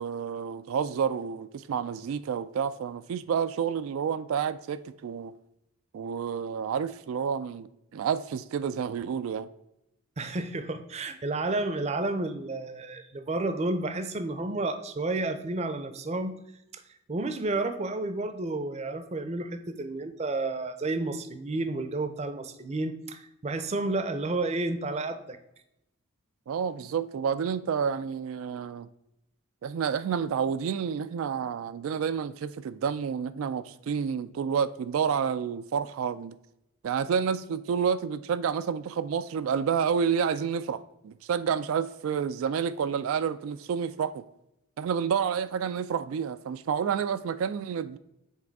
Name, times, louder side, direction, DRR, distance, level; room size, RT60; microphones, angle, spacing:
voice 1, 0.0-5.3 5.9-7.7 7.9-9.5 26.5-28.9 29.6-36.3 36.8-44.2 44.8-48.0, right 7 dB, 85° right, 0.3 m, -29 dB
voice 2, 10.2-16.4 16.7-16.8 17.1-25.4, right 2 dB, 30° right, 0.5 m, -31 dB
7.3 x 3.5 x 4.6 m
head